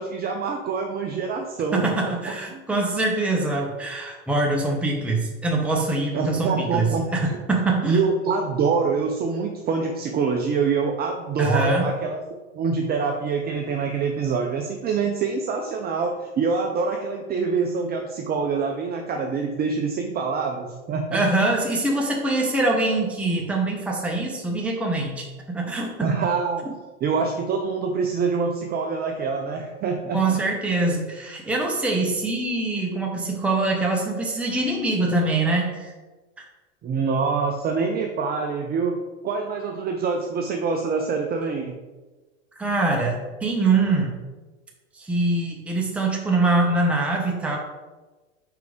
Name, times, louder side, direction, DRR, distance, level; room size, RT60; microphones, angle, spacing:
voice 1, 0.0-2.6 6.1-7.1 7.9-12.2 12.5-21.2 26.0-26.7 27.0-30.4 36.8-41.8, right 5 dB, 25° right, 3 dB, 0.6 m, -25 dB
voice 2, 1.7-8.0 11.4-11.9 21.1-25.3 25.5-25.9 30.1-35.9 42.6-44.1 44.9-47.6, right 2 dB, 5° right, -1 dB, 1.0 m, -23 dB
4.7 x 4.7 x 5.0 m, 1.2 s
hypercardioid pair, 100°, 36 cm